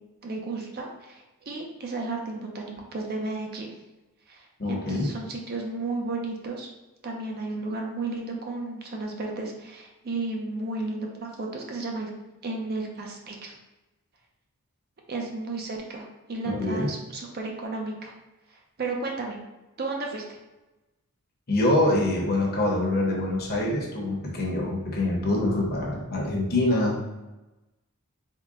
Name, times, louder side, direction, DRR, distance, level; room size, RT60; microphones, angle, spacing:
voice 1, 0.2-3.7 4.3-6.7 7.0-12.1 12.4-13.6 15.1-18.1 18.5-19.4 19.8-20.2, right 3 dB, 45° right, 1 dB, 0.6 m, -33 dB
voice 2, 4.6-5.1 16.5-16.9 21.5-27.0, left 1 dB, 45° left, -1 dB, 0.8 m, -25 dB
3.7 x 2.1 x 3.6 m, 1.0 s
head